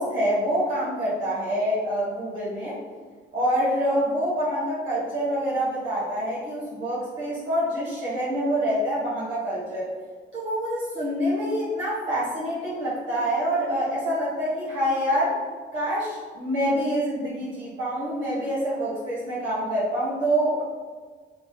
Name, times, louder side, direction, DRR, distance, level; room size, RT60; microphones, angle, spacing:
voice 1, 0.0-2.8 3.3-9.9 10.3-15.4 15.7-20.6, equal, 75° right, -8 dB, 1.3 m, -26 dB
4.5 x 2.7 x 2.2 m, 1.5 s
cardioid pair, 90°, 20 cm